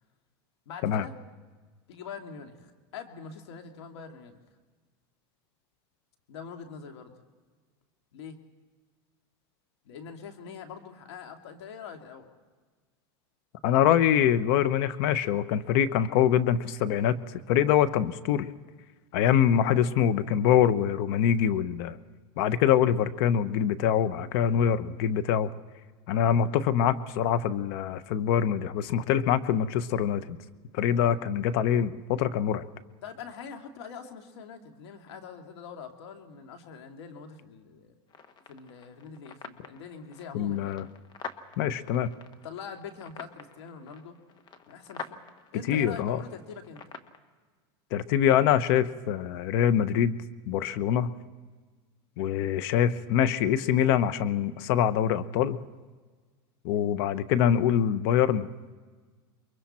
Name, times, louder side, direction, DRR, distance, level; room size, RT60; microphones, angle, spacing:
voice 1, 0.7-1.2 1.9-4.4 6.3-7.1 8.1-8.4 9.8-12.3 31.1-31.2 33.0-37.9 38.5-40.8 42.4-44.2 44.7-45.2 45.5-46.9, left 6 dB, 85° left, 5 dB, 2.5 m, -43 dB
voice 2, 13.6-18.5 19.1-22.0 22.4-25.5 26.1-30.4 30.7-32.6 40.3-40.9 41.6-42.1 45.7-46.2 47.9-50.2 50.5-51.1 52.2-55.6 56.6-58.5, left 9 dB, 60° left, 13 dB, 1.0 m, -24 dB
sound 1, 38.1-47.2, left 5 dB, 35° left, 1.4 m, -47 dB
28.5 x 23.0 x 4.4 m, 1.4 s
supercardioid pair, 125°, 14 cm